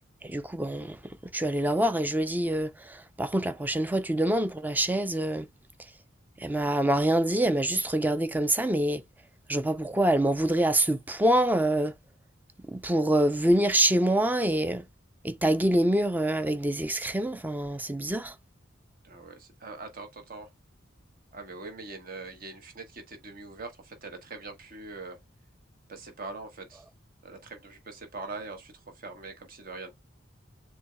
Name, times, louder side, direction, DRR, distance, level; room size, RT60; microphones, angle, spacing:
voice 1, 0.2-1.0 1.3-5.5 6.4-9.0 9.5-11.9 12.7-14.8 15.2-18.3, right 1 dB, 10° right, 0.4 m, -25 dB
voice 2, 19.0-20.5 21.3-25.2 25.9-26.8 27.2-29.9, right 3 dB, 50° right, 1.2 m, -42 dB
7.0 x 2.8 x 2.2 m
head